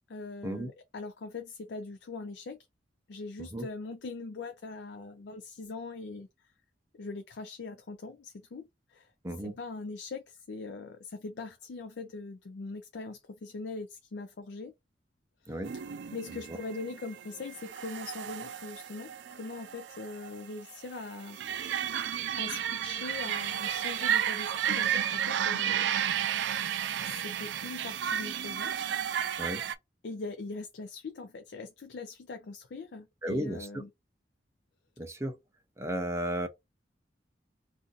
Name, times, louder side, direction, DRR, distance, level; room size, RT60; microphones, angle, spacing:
voice 1, 0.1-2.6 3.1-6.5 6.9-8.6 8.9-9.1 9.4-14.7 15.4-15.6 16.1-21.4 22.4-25.9 27.0-28.7 30.0-33.9, left 3 dB, 70° left, 0.4 m, -41 dB
voice 2, 9.2-9.6 15.5-15.7 16.5-16.6 29.4-29.6 33.2-33.7 35.0-35.4 35.8-36.5, right 1 dB, 15° right, 0.6 m, -34 dB
sound 1, 15.6-29.7, right 9 dB, 85° right, 0.4 m, -33 dB
2.6 x 2.5 x 3.8 m
head